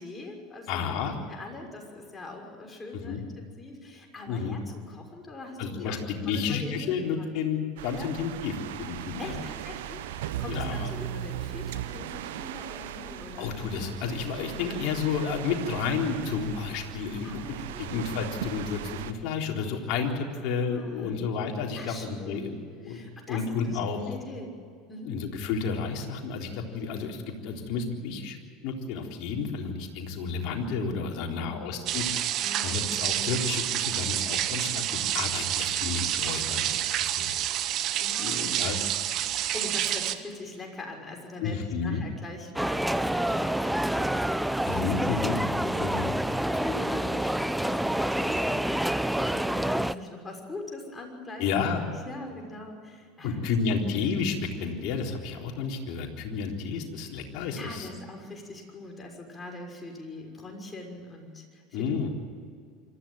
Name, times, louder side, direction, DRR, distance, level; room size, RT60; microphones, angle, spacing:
voice 1, 0.0-0.8 1.2-6.0 6.3-7.2 7.9-8.1 9.2-13.5 14.6-14.8 17.2-18.1 20.4-21.2 21.8-22.5 22.8-23.8 24.0-24.5 24.9-25.2 31.1-31.9 32.4-32.9 37.6-37.7 38.0-38.7 39.4-51.5 51.9-53.4 53.9-54.1 57.5-62.1, left 2 dB, 20° left, 2 dB, 6.1 m, -42 dB
voice 2, 0.7-1.2 3.1-3.2 4.3-4.6 5.6-9.3 10.5-10.9 13.4-22.6 22.8-24.1 25.1-28.4 28.6-32.2 32.6-37.3 38.2-38.8 41.4-42.0 44.7-45.4 45.8-46.1 51.4-51.8 53.2-57.9 61.7-62.1, left 5 dB, 60° left, 1 dB, 3.8 m, -31 dB
sound 1, 7.8-19.1, right 11 dB, 70° right, 1.2 m, -38 dB
sound 2, 31.9-40.1, right 12 dB, 50° right, 1.3 m, -28 dB
sound 3, 42.6-49.9, right 1 dB, 5° right, 0.7 m, -27 dB
25.5 x 14.5 x 9.2 m, 2.2 s
hypercardioid pair, 80°, 0 cm